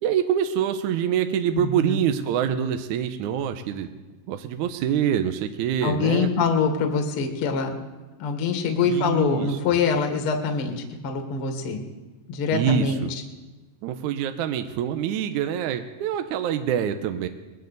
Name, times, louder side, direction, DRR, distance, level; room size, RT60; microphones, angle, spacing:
voice 1, 0.0-3.9 4.3-6.3 8.8-9.6 12.5-13.1 13.8-17.3, right 9 dB, 75° right, 8 dB, 1.9 m, -25 dB
voice 2, 1.5-2.0 5.8-7.8 8.2-11.9 12.3-13.0, left 5 dB, 50° left, 4 dB, 2.0 m, -24 dB
21.0 x 16.0 x 4.0 m, 1.2 s
omnidirectional pair, 3.9 m